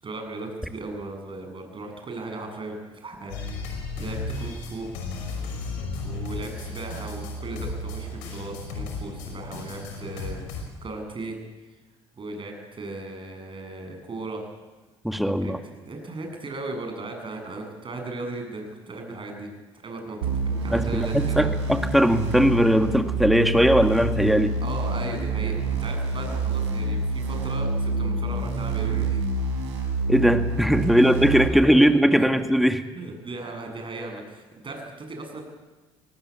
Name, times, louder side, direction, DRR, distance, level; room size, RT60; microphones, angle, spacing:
voice 1, 0.0-3.3 4.0-4.9 6.0-11.4 12.2-14.5 15.4-21.5 24.6-29.4 30.9-31.1 31.5-32.3 32.9-35.4, right 2 dB, 35° right, 4 dB, 8.0 m, -37 dB
sound 1, 3.3-10.6, left 3 dB, 75° left, 5.8 m, -34 dB
voice 2, 15.0-15.6 20.7-24.5 30.1-32.8, equal, ahead, 7 dB, 2.1 m, -20 dB
sound 2, 20.2-31.5, right 3 dB, 85° right, 5.1 m, -27 dB
23.0 x 19.0 x 8.6 m, 1.2 s
hypercardioid pair, 60°, 14 cm